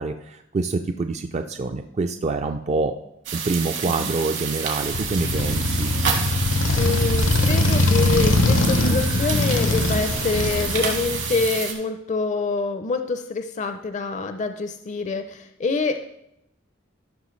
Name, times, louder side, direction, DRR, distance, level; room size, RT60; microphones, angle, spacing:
voice 1, 0.0-3.0 3.3-5.9, right 3 dB, 35° right, 6 dB, 0.4 m, -26 dB
sound 1, 3.2-11.7, right 7 dB, 70° right, 1.7 m, -29 dB
Motorcycle, 4.9-11.6, left 2 dB, 85° left, 0.7 m, -22 dB
voice 2, 6.7-16.0, left 3 dB, 40° left, 8 dB, 0.5 m, -26 dB
14.0 x 5.9 x 3.1 m, 0.81 s
head